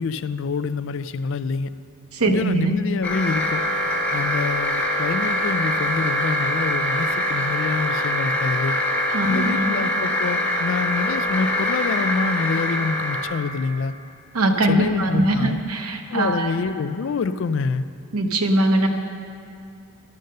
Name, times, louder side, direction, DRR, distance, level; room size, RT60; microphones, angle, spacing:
voice 1, 0.0-1.7 2.2-3.6 4.1-8.8 9.3-13.9 14.7-15.6 16.1-17.9, left 4 dB, 60° left, 13 dB, 0.3 m, -26 dB
voice 2, 2.1-2.7 9.1-9.7 14.3-16.5 18.1-18.9, right 2 dB, 90° right, 4 dB, 0.9 m, -21 dB
sound 1, 3.0-13.2, left 1 dB, 10° left, 1.9 m, -24 dB
11.5 x 6.5 x 6.6 m, 2.5 s
head